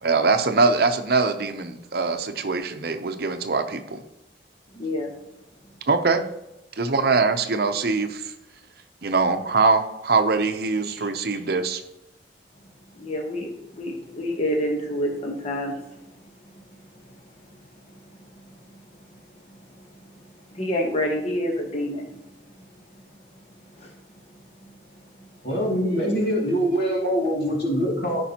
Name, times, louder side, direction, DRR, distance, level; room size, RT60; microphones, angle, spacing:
voice 1, 0.0-4.0 5.9-6.2 6.8-8.2 9.0-11.8, right 4 dB, 60° right, 7 dB, 0.7 m, -22 dB
voice 2, 4.7-5.1 10.8-11.1 12.9-15.8 16.5-16.6 18.3-18.4 18.7-18.8 19.8-19.9 20.5-22.1 23.7-23.9, left 1 dB, 35° left, 0 dB, 1.1 m, -28 dB
voice 3, 25.4-28.2, equal, 60° left, -2 dB, 2.4 m, -23 dB
14.0 x 5.3 x 2.9 m, 0.91 s
head